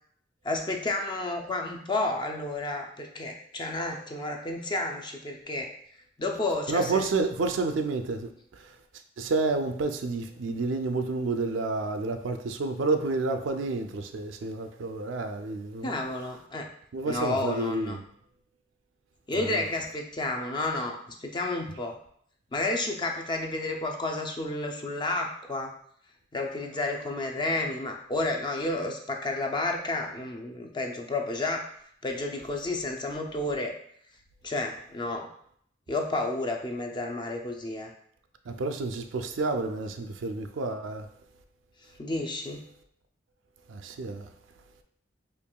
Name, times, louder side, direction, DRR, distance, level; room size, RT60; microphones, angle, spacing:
voice 1, 0.4-5.7 6.2-7.1 15.8-16.7 17.0-18.0 19.3-22.0 22.5-25.7 26.3-31.6 32.0-33.7 34.4-35.3 35.9-37.9 42.0-42.6, left 2 dB, 25° left, 0.4 m, -31 dB
voice 2, 6.7-8.3 9.2-15.9 16.9-18.0 19.3-19.7 38.5-41.1 43.7-44.3, right 3 dB, 80° right, 0.4 m, -30 dB
4.5 x 2.9 x 2.2 m
head